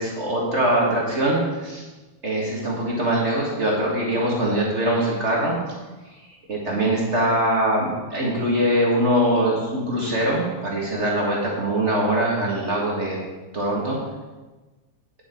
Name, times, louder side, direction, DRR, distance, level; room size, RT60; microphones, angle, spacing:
voice 1, 0.0-1.8 2.2-5.5 6.5-13.2 13.5-14.0, right 1 dB, 35° right, -3 dB, 1.3 m, -22 dB
9.5 x 7.6 x 4.4 m, 1.2 s
omnidirectional pair, 3.5 m